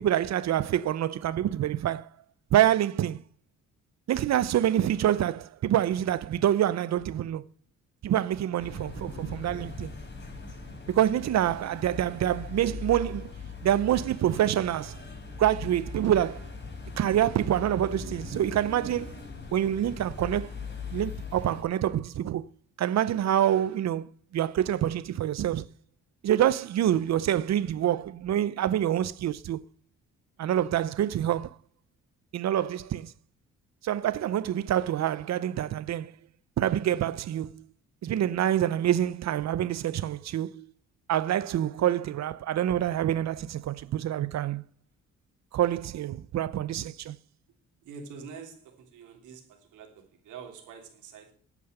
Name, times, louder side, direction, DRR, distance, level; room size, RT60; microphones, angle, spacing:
voice 1, 0.0-2.1 2.5-3.2 4.1-7.4 8.0-9.9 10.9-13.3 13.6-15.0 15.4-16.5 17.0-19.2 19.5-20.5 20.9-22.5 22.8-24.1 24.3-25.7 26.2-29.6 30.4-31.5 32.3-33.1 33.8-36.1 36.6-37.7 38.0-40.7 41.1-44.6 45.5-47.2, right 11 dB, 60° right, 0.7 m, -26 dB
sound 1, 8.6-21.6, left 4 dB, 35° left, 4.6 m, -40 dB
voice 2, 47.8-51.3, right 5 dB, 80° right, 3.2 m, -46 dB
9.6 x 9.4 x 6.7 m
cardioid pair, 90°, 30 cm